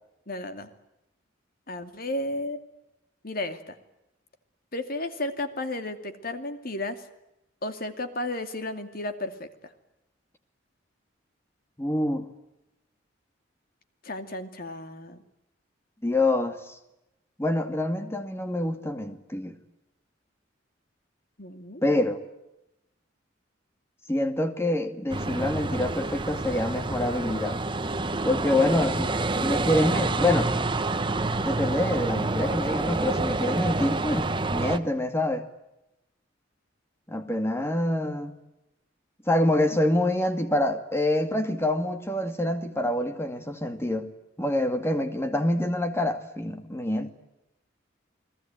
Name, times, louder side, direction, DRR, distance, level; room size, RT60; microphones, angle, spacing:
voice 1, 0.3-0.7 1.7-2.6 3.2-3.7 4.7-7.0 7.6-9.7 14.0-15.2 21.4-21.8 28.6-28.9, left 2 dB, 50° left, 2.5 m, -33 dB
voice 2, 11.8-12.2 16.0-16.6 17.4-19.6 21.8-22.2 24.1-27.6 28.2-30.5 31.5-35.5 37.1-38.3 39.3-44.1 44.4-47.1, left 1 dB, 15° left, 2.3 m, -26 dB
sound 1, 25.1-34.8, right 2 dB, 25° right, 1.1 m, -28 dB
30.0 x 20.0 x 9.1 m
head